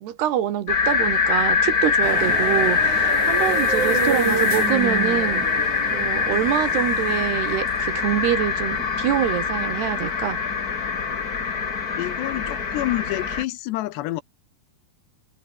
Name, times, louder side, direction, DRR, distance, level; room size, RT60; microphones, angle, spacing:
voice 1, 0.0-5.5 5.9-10.4, right 11 dB, 75° right, 3.9 m, -25 dB
sound 1, 0.7-13.4, left 5 dB, 45° left, 1.2 m, -23 dB
sound 2, 2.0-10.1, right 6 dB, 45° right, 4.9 m, -30 dB
voice 2, 12.0-14.2, left 17 dB, 85° left, 3.1 m, -28 dB
omnidirectional pair, 4.8 m